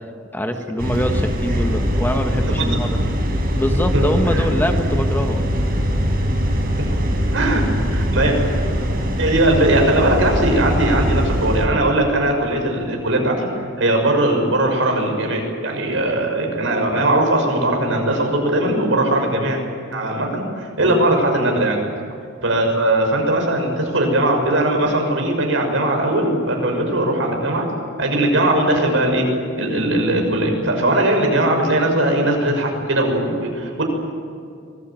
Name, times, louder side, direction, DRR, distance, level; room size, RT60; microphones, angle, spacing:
voice 1, 0.3-3.0 3.6-5.4 20.8-21.0, left 1 dB, 10° left, 5 dB, 1.4 m, -23 dB
sound 1, 0.8-11.7, equal, 50° right, 4.3 m, -21 dB
voice 2, 3.9-4.5 7.3-8.3 9.2-19.6 19.9-21.8 22.4-27.7 28.0-29.3 29.5-33.8, right 1 dB, 85° right, 2 dB, 6.0 m, -19 dB
24.5 x 19.5 x 9.1 m, 2.3 s
head